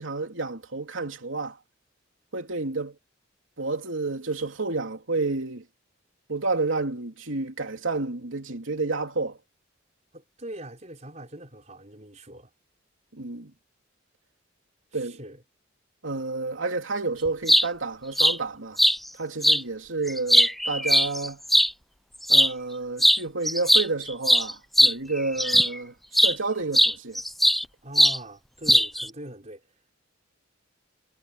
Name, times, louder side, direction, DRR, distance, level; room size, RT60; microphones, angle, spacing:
voice 1, 0.0-1.6 2.3-2.9 3.6-5.6 6.3-9.4 13.1-13.5 14.9-15.2 16.0-18.8 19.2-21.4 22.3-27.2, right 3 dB, 85° right, 3.1 m, -30 dB
voice 2, 10.1-12.5 14.9-15.4 27.8-29.7, right 1 dB, 35° right, 4.8 m, -42 dB
sound 1, 17.3-17.7 18.2-18.4 18.8-19.0 19.4-19.6 20.1-21.7 22.2-22.5 23.0-23.2 23.5-25.8 26.1-26.4 26.7-27.6 28.0-28.2 28.7-29.1, equal, ahead, 0.4 m, -19 dB
head